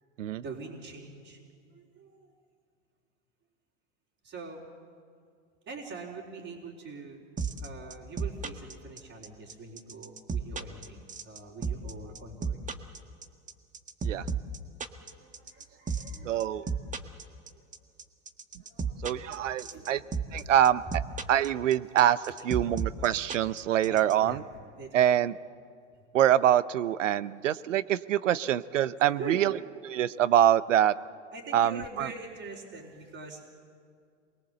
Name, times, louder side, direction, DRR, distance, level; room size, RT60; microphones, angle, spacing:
voice 1, 0.4-1.4 1.7-2.3 4.2-4.6 5.7-7.2 7.6-11.0 11.3-12.6 15.0-16.3 16.6-17.1 17.5-17.6 18.6-19.0 19.7-20.0 20.3-20.4 20.9-21.0 23.9-24.4 24.8-25.1 29.2-29.4 31.3-33.5, right 4 dB, 35° right, -4 dB, 4.2 m, -43 dB
sound 1, 7.4-24.1, right 6 dB, 20° right, 1.6 m, -32 dB
voice 2, 16.2-16.7 19.0-20.0 20.3-20.8 21.3-22.2 22.4-24.4 24.9-25.3 26.1-29.5 29.8-30.9 31.5-32.1, right 11 dB, 80° right, 17 dB, 0.8 m, -25 dB
27.0 x 21.5 x 7.9 m, 2.2 s
hypercardioid pair, 95°, 37 cm